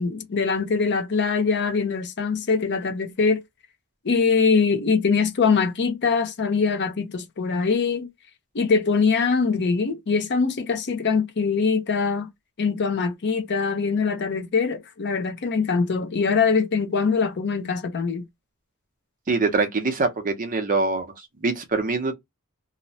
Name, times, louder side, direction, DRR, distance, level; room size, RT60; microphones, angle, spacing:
voice 1, 0.0-3.4 4.0-8.1 8.5-12.3 12.6-18.2, left 5 dB, 55° left, 0.6 m, -23 dB
voice 2, 19.3-21.1 21.4-22.1, right 3 dB, 40° right, 0.6 m, -23 dB
2.7 x 2.1 x 2.7 m
head